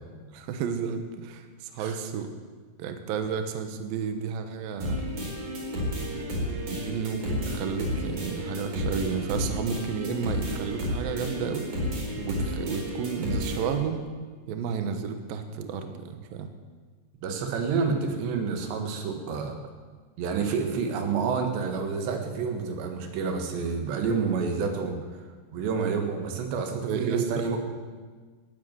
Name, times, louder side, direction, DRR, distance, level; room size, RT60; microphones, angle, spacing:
voice 1, 0.3-2.4 2.8-5.1 6.7-11.7 12.2-14.1 14.5-16.5 26.7-27.5, right 6 dB, 70° right, 7 dB, 2.7 m, -32 dB
sound 1, 4.8-13.8, equal, 45° right, 5.6 m, -31 dB
voice 2, 17.2-19.6 20.2-25.3 25.5-27.6, right 5 dB, 85° right, 5 dB, 3.9 m, -29 dB
15.5 x 9.3 x 9.5 m, 1.5 s
omnidirectional pair, 4.9 m